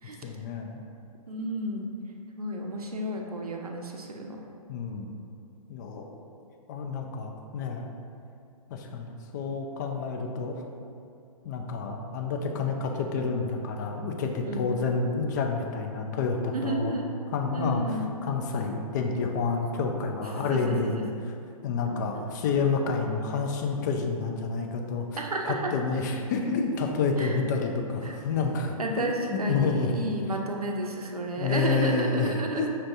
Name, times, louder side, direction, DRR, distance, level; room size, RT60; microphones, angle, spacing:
voice 1, 0.2-0.8 4.7-5.1 5.7-6.2 6.7-7.9 8.7-10.6 11.4-16.9 17.3-20.9 21.6-25.1 25.7-29.9 31.4-32.7, left 4 dB, 30° left, 3 dB, 0.4 m, -29 dB
voice 2, 1.3-1.9 2.4-4.4 14.4-14.8 16.5-17.2 17.5-18.1 20.2-21.0 21.9-22.2 25.2-25.7 27.2-27.4 28.0-28.2 28.8-32.7, right 1 dB, 80° right, 1 dB, 0.6 m, -32 dB
5.5 x 3.2 x 2.6 m, 2.4 s
figure-of-eight pair, 120°, 19 cm